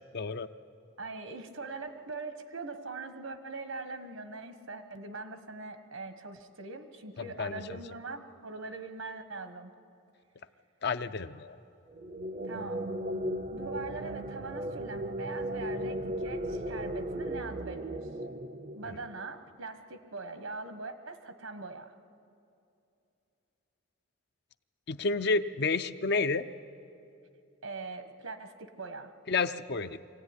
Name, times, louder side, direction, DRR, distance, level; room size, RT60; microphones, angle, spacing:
voice 1, 0.1-0.5 7.2-7.8 10.8-11.5 18.9-19.0 24.9-26.5 29.3-30.0, left 4 dB, 50° left, 11 dB, 0.6 m, -30 dB
voice 2, 1.0-9.7 12.4-12.9 13.5-18.1 18.7-21.9 27.6-29.1, right 3 dB, 75° right, 8 dB, 1.4 m, -42 dB
sound 1, 11.9-19.4, right 1 dB, 35° right, 0.6 m, -36 dB
24.0 x 16.5 x 9.8 m, 2.7 s
head